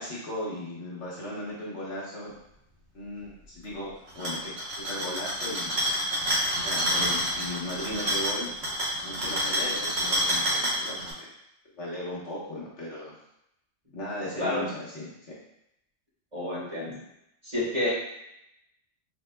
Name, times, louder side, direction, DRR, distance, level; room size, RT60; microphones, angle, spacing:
voice 1, 0.0-2.3 2.9-4.5 4.9-5.8 6.6-8.5 9.0-11.3 11.7-13.1 13.9-15.4, left 1 dB, 60° left, -6 dB, 1.4 m, -37 dB
sound 1, 4.1-11.1, equal, 55° right, 1.3 m, -28 dB
voice 2, 16.3-16.9 17.4-17.9, left 1 dB, 30° right, -8 dB, 1.6 m, -29 dB
5.3 x 3.6 x 2.2 m, 0.82 s
omnidirectional pair, 1.3 m